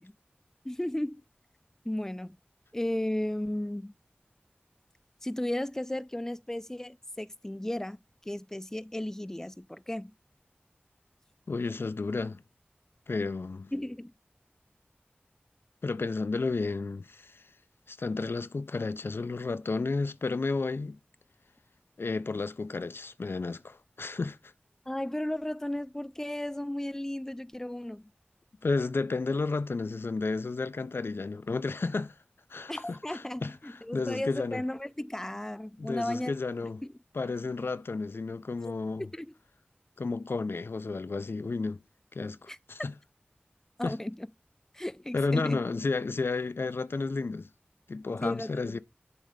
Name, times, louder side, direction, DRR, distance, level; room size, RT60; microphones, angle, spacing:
voice 1, 0.6-1.2 1.9-2.4 2.7-3.9 5.2-10.1 13.7-14.1 24.9-28.1 32.7-36.3 39.1-39.3 42.5-42.6 43.8-44.3 44.7-45.6 48.2-48.8, left 1 dB, 10° left, 0.4 m, -34 dB
voice 2, 11.5-12.4 13.1-13.7 15.8-17.4 17.9-21.0 22.0-24.5 28.6-32.1 32.5-34.6 35.8-36.8 37.1-39.1 40.0-41.8 42.1-42.9 43.8-44.0 45.1-47.5 47.9-48.8, left 3 dB, 85° left, 0.4 m, -32 dB
7.4 x 3.2 x 4.9 m
wide cardioid pair, 45°, 4 cm